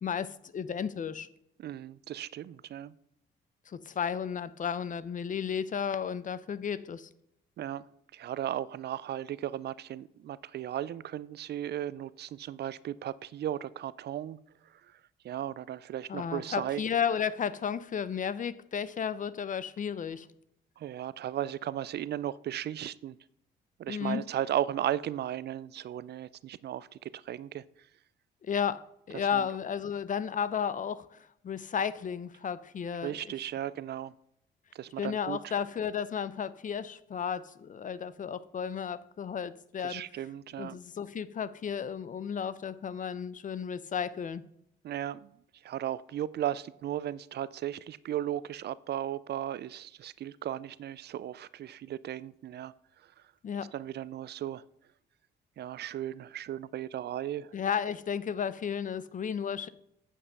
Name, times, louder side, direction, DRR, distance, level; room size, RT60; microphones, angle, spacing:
voice 1, 0.0-1.3 3.7-7.1 16.1-20.3 23.9-24.3 28.4-28.8 29.1-33.4 35.0-40.3 40.6-44.4 53.4-53.7 57.5-59.7, left 7 dB, 40° left, 16 dB, 0.6 m, -33 dB
voice 2, 1.6-2.9 7.6-7.8 8.1-14.4 15.2-16.8 20.8-23.2 23.8-27.6 29.1-29.4 33.0-34.1 34.7-35.5 39.8-40.8 44.8-45.3 45.6-52.7 53.7-54.6 55.6-57.5, right 11 dB, 55° right, 19 dB, 0.4 m, -36 dB
8.5 x 5.4 x 6.6 m, 0.76 s
cardioid pair, 90°, 20 cm